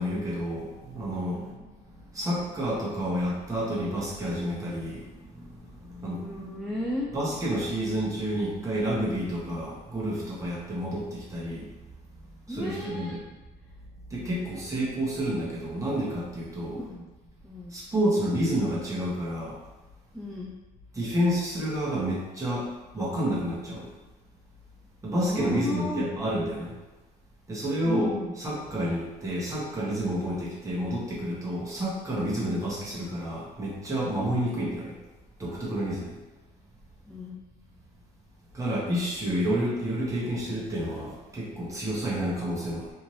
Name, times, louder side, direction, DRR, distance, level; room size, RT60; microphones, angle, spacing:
voice 1, 0.0-1.5 2.1-6.5 7.1-11.7 12.5-13.2 14.1-16.8 17.7-19.6 20.9-22.7 22.9-23.9 25.0-26.7 27.5-34.9 35.4-36.2 38.5-42.9, equal, 20° right, -7 dB, 1.1 m, -29 dB
voice 2, 1.3-1.6 6.1-7.1 12.5-13.2 16.6-17.1 17.4-17.8 20.1-20.5 25.3-26.0 27.8-28.3 37.0-37.4, left 1 dB, ahead, -4 dB, 0.4 m, -34 dB
2.7 x 2.6 x 3.1 m, 1.1 s
cardioid pair, 110°, 17 cm